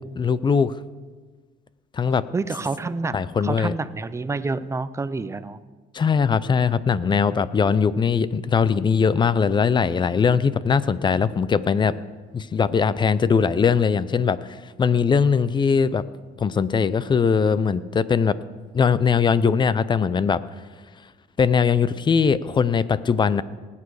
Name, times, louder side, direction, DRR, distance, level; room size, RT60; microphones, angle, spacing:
voice 1, 0.2-0.7 1.9-2.2 3.1-3.7 5.9-11.9 12.3-14.4 14.8-16.0 16.4-18.3 18.7-20.4 21.4-23.4, left 6 dB, 25° left, 17 dB, 0.5 m, -20 dB
voice 2, 2.3-5.6, right 3 dB, 15° right, 13 dB, 0.6 m, -28 dB
19.5 x 8.4 x 4.9 m, 1.4 s
cardioid pair, 110°, 17 cm